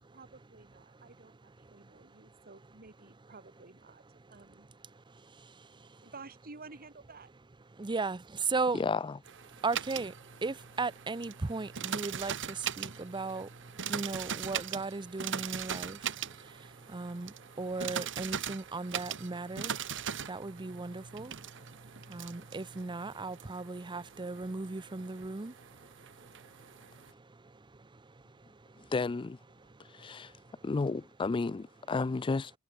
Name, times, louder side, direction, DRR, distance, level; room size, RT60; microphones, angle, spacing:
voice 1, 0.1-4.0 4.3-4.7 5.8-7.3, right 3 dB, 40° right, 2.6 m, -52 dB
voice 2, 1.7-2.5 4.9-6.1 7.7-8.8 9.5-28.9 29.6-30.6, right 3 dB, 20° right, 0.6 m, -38 dB
voice 3, 8.7-9.2 28.9-29.4 29.9-30.3 30.6-32.5, left 4 dB, 20° left, 0.3 m, -32 dB
sound 1, 9.3-27.1, right 8 dB, 55° right, 2.0 m, -41 dB
head